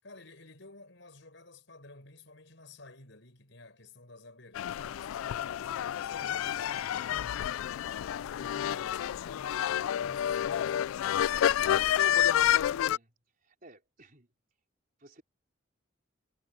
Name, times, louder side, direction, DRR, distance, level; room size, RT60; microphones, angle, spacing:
voice 1, 0.0-7.7 8.0-9.7 10.0-11.0, left 2 dB, 65° left, 5.9 m, -53 dB
sound 1, 4.5-13.0, left 11 dB, 90° left, 0.3 m, -29 dB
voice 2, 12.4-13.1 13.4-14.3 15.0-15.2, right 2 dB, 45° right, 4.1 m, -57 dB
head